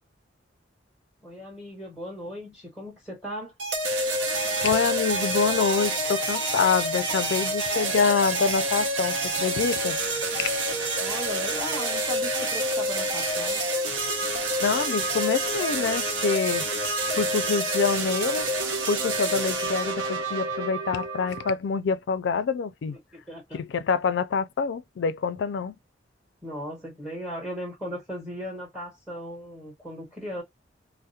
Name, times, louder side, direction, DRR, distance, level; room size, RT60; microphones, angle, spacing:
voice 1, 1.2-3.5 11.0-13.7 23.1-23.6 26.4-30.4, equal, 5° right, 1.2 m, -37 dB
sound 1, 3.6-21.6, right 2 dB, 75° right, 0.8 m, -28 dB
voice 2, 4.6-10.0 10.4-10.5 14.6-16.7 17.1-18.5 18.9-23.0 23.5-25.8, left 5 dB, 65° left, 0.3 m, -26 dB
2.3 x 2.0 x 2.6 m
head